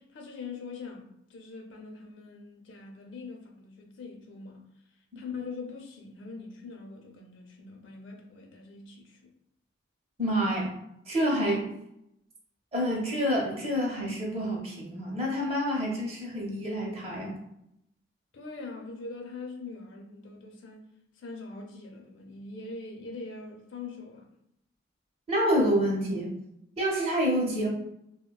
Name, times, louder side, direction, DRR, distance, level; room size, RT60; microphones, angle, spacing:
voice 1, 0.0-4.6 5.2-9.2 18.3-20.9 21.2-24.3, left 4 dB, 80° left, 0.6 m, -42 dB
voice 2, 10.2-10.7 11.1-11.7 12.7-17.4 25.3-26.4 26.8-27.7, equal, 30° right, 0.6 m, -28 dB
3.0 x 2.1 x 2.2 m
head